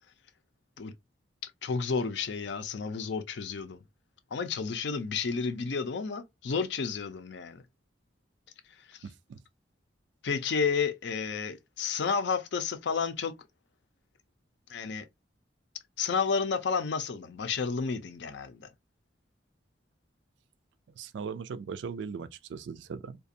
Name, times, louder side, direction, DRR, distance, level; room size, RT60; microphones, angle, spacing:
voice 1, 1.4-3.8 4.3-7.6 8.9-9.0 10.2-13.3 14.7-15.0 16.0-18.7, left 5 dB, 65° left, 0.5 m, -31 dB
voice 2, 9.0-9.4 21.0-23.2, right 5 dB, 70° right, 0.3 m, -39 dB
2.4 x 2.2 x 2.6 m
head